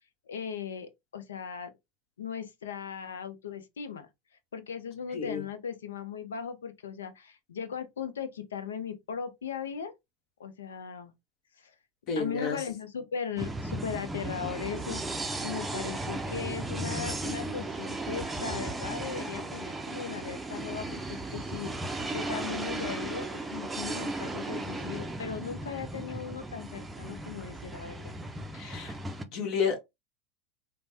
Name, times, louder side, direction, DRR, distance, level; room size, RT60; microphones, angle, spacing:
voice 1, 0.3-1.7 2.2-4.1 4.5-9.9 10.4-11.1 11.6-11.7 12.2-28.1, left 7 dB, 90° left, 0.5 m, -38 dB
voice 2, 5.1-5.4 12.1-12.6 28.5-29.0 29.3-29.8, left 6 dB, 50° left, 1.2 m, -31 dB
sound 1, 13.4-29.2, right 2 dB, 15° right, 0.5 m, -36 dB
3.2 x 2.1 x 2.7 m
hypercardioid pair, 95°, 0 cm